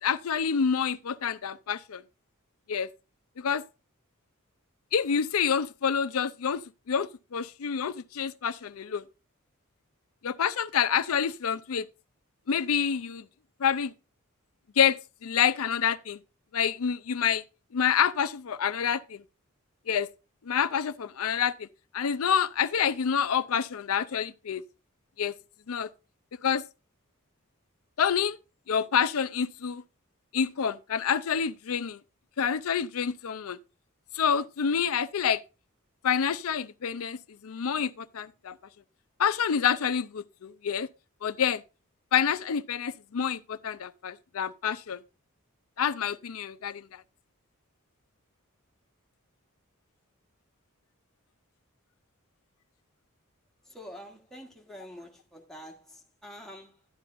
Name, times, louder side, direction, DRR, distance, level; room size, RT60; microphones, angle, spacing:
voice 1, 0.0-2.0 2.7-2.9 3.4-3.6 4.9-6.6 6.9-9.0 10.2-11.9 12.5-13.3 13.6-13.9 14.8-16.2 16.5-17.4 17.7-19.2 19.9-20.1 20.5-21.7 21.9-24.6 25.2-25.3 25.7-25.9 26.4-26.6 28.0-28.4 28.7-29.8 30.3-32.0 32.4-33.6 34.1-35.4 36.0-38.6 39.2-40.9 41.2-41.6 42.1-45.0 45.8-47.0, left 7 dB, 75° left, 0.5 m, -27 dB
voice 2, 53.6-56.9, equal, ahead, 1.4 m, -46 dB
12.0 x 9.3 x 2.5 m
head